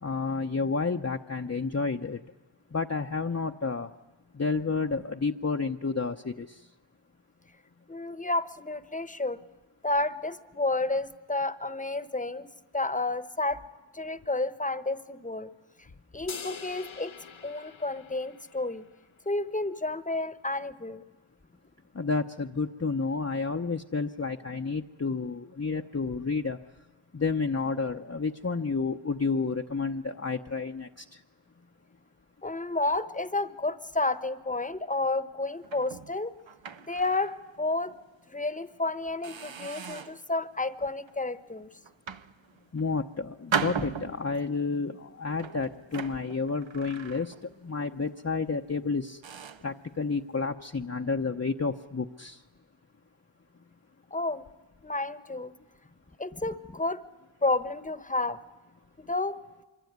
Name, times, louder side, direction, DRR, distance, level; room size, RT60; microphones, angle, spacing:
voice 1, 0.0-2.2 2.7-3.9 4.3-6.6 21.9-26.6 27.1-31.2 42.7-47.3 47.6-49.2 49.6-52.4, left 4 dB, 30° left, 3 dB, 0.8 m, -30 dB
voice 2, 7.9-9.4 9.8-12.5 12.7-13.6 13.9-15.5 16.1-17.1 17.4-18.8 19.3-21.0 32.4-36.3 36.9-37.9 38.3-41.7 43.8-43.9 54.1-54.5 54.8-55.5 56.2-57.0 57.4-58.4 59.0-59.4, left 2 dB, 15° left, 13 dB, 1.1 m, -31 dB
sound 1, 16.3-18.8, left 6 dB, 75° left, 1.1 m, -44 dB
sound 2, 35.6-37.4 37.9-38.0 38.6-38.8 39.2-40.3 40.8-41.2 41.8-42.9 43.5-44.5 45.3-47.6 47.9-48.2 48.8-48.9 49.2-49.7, right 6 dB, 70° right, 0.9 m, -37 dB
25.5 x 24.0 x 9.5 m, 1.2 s
wide cardioid pair, 55°, 48 cm